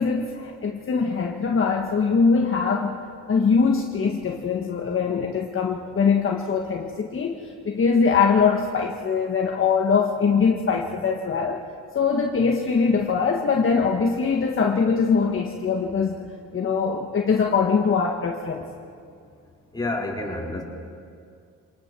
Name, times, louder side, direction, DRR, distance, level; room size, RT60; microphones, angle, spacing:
voice 1, 0.0-3.0 3.3-11.6 11.9-16.2 16.5-18.6, left 5 dB, 45° left, 1 dB, 1.7 m, -22 dB
voice 2, 19.7-20.6, left 2 dB, 15° left, -2 dB, 4.7 m, -28 dB
27.0 x 19.5 x 6.3 m, 2.4 s
cardioid pair, 90°, 30 cm